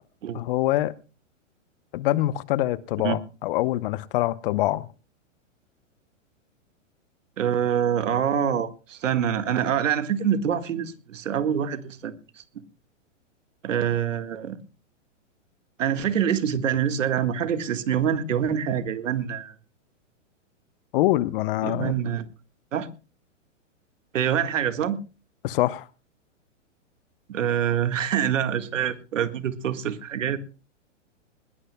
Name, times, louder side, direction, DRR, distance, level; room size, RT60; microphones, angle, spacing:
voice 1, 0.3-0.9 1.9-4.9 20.9-21.9 25.4-25.9, left 16 dB, 45° left, 0.8 m, -24 dB
voice 2, 7.4-12.4 13.6-14.6 15.8-19.6 21.6-22.3 22.7-22.9 24.1-25.0 27.3-30.4, right 9 dB, 80° right, 1.8 m, -25 dB
20.5 x 17.5 x 2.2 m
hypercardioid pair, 130°, 38 cm